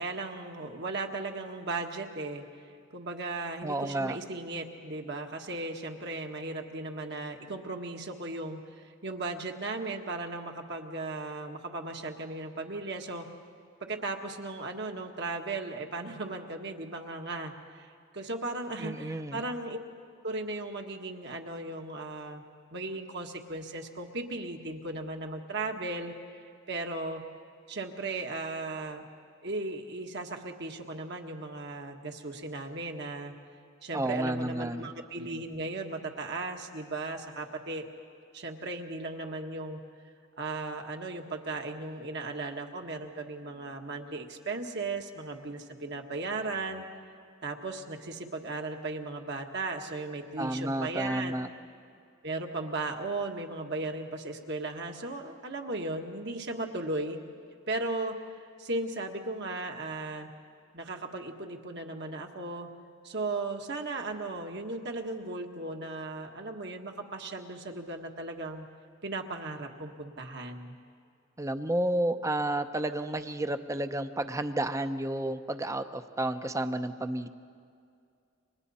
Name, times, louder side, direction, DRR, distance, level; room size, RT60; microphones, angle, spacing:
voice 1, 0.0-2.4 2.9-13.3 13.9-17.9 18.1-19.8 20.2-22.4 22.7-26.4 26.7-27.2 27.7-29.0 29.4-33.3 33.8-37.9 38.3-39.8 40.4-46.8 47.4-51.3 52.2-57.2 57.7-58.1 58.6-60.3 60.7-62.7 63.0-68.7 69.0-70.8, right 2 dB, 55° right, 3 dB, 1.6 m, -36 dB
voice 2, 3.6-4.2 18.8-19.4 33.9-34.9 50.4-51.5 71.4-77.3, right 1 dB, 15° right, 9 dB, 0.7 m, -31 dB
30.0 x 25.0 x 4.2 m, 2.4 s
head